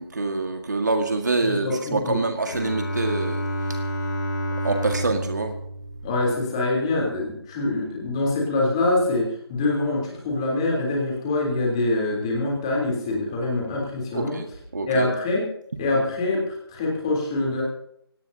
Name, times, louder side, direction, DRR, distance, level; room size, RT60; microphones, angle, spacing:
voice 1, 0.0-3.4 4.6-5.5 14.1-14.5 14.7-15.1, right 3 dB, 45° right, 5 dB, 1.8 m, -25 dB
voice 2, 1.4-2.2 6.0-14.6 14.8-15.5 15.8-17.6, left 2 dB, 10° left, -2 dB, 3.5 m, -25 dB
Bowed string instrument, 2.4-6.9, equal, 45° left, 3.9 m, -30 dB
25.0 x 18.0 x 2.8 m, 0.71 s
figure-of-eight pair, 175°, 14 cm